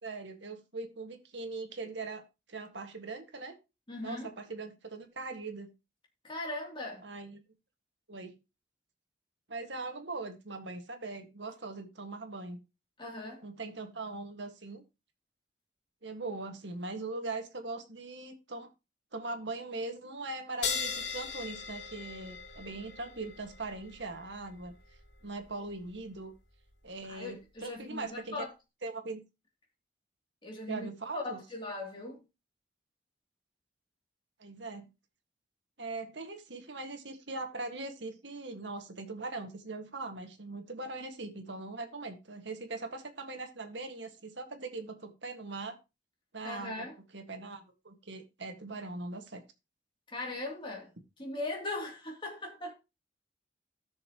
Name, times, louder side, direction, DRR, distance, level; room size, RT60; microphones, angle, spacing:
voice 1, 0.0-2.2 2.5-3.6 4.0-5.7 7.0-7.4 8.1-8.3 9.5-12.6 13.4-14.8 16.0-18.7 19.1-24.7 25.2-26.3 26.8-28.5 28.8-29.2 30.7-31.4 34.4-34.9 35.8-45.8 46.3-46.8 47.1-49.4, right 3 dB, 80° right, 1.8 m, -41 dB
voice 2, 3.9-4.3 6.2-7.1 13.0-13.5 27.1-28.5 30.4-30.9 31.1-32.2 46.4-47.0 50.1-52.7, left 2 dB, 25° left, 3.0 m, -39 dB
sound 1, 20.6-27.6, left 6 dB, 85° left, 2.1 m, -41 dB
17.0 x 6.5 x 3.0 m
head